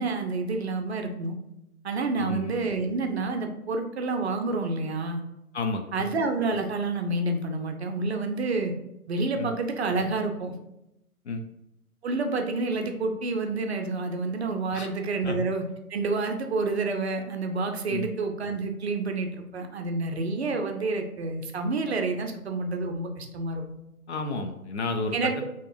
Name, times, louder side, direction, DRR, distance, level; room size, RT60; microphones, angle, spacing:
voice 1, 0.0-1.4 1.8-5.2 5.9-8.7 9.1-10.5 12.0-15.6 15.9-23.6 25.1-25.4, right 3 dB, 45° right, 4 dB, 0.5 m, -29 dB
voice 2, 2.2-2.5 5.5-6.1 9.4-9.5 11.3-11.4 14.7-14.9 15.2-15.4 17.9-18.1 24.1-25.2, left 3 dB, 50° left, 5 dB, 0.5 m, -31 dB
4.4 x 2.9 x 2.5 m, 0.88 s
figure-of-eight pair, 125°, 44 cm